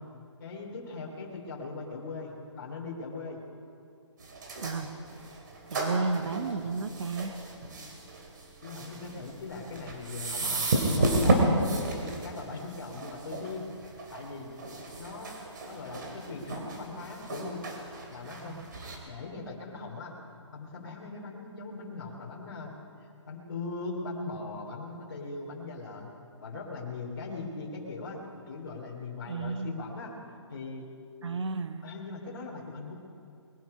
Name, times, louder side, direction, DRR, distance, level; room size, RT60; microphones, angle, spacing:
voice 1, 0.4-3.4 8.6-13.7 14.1-14.5 15.0-15.4 15.7-17.6 18.1-18.6 19.1-20.1 20.5-22.7 23.3-26.1 26.4-30.1 30.5-30.9 31.8-33.0, left 3 dB, 45° left, -3 dB, 2.9 m, -40 dB
sound 1, 4.2-19.0, right 2 dB, 40° right, 2.5 m, -32 dB
voice 2, 5.7-7.3 18.5-18.6 29.3-29.8 31.2-31.8, right 4 dB, 70° right, 10 dB, 1.1 m, -32 dB
21.5 x 10.5 x 5.5 m, 2.4 s
hypercardioid pair, 180°, 15 cm